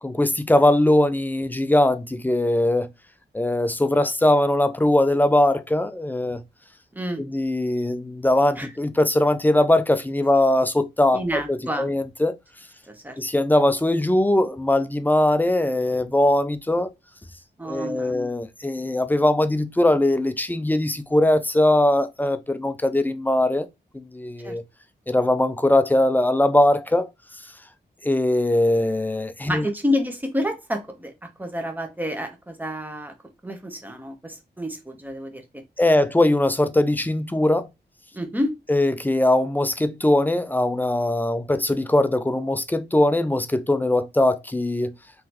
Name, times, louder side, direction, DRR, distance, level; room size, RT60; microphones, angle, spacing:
voice 1, 0.0-2.9 3.3-6.4 7.2-12.3 13.2-16.9 17.6-23.7 23.9-24.6 25.1-27.1 28.0-29.6 35.8-37.7 38.7-44.9, left 1 dB, 10° left, 0.3 m, -21 dB
voice 2, 6.9-7.2 8.6-8.7 11.1-11.9 12.9-13.2 17.6-18.3 24.4-24.6 29.5-33.1 33.4-35.6 38.1-38.5, left 1 dB, 10° right, 0.7 m, -29 dB
3.8 x 3.1 x 2.9 m
wide cardioid pair, 150°, 18 cm